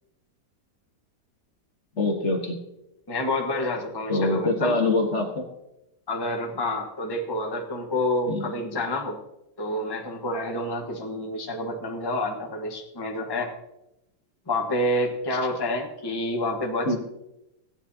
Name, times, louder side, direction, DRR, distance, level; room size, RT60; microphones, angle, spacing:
voice 1, 2.0-2.6 4.1-5.5 8.3-8.5 16.8-17.0, left 2 dB, 40° left, 1 dB, 1.4 m, -24 dB
voice 2, 3.1-4.7 6.1-9.2 9.6-13.5 14.5-17.0, left 1 dB, 15° left, 1 dB, 1.1 m, -28 dB
16.5 x 10.0 x 2.8 m, 0.88 s
omnidirectional pair, 2.1 m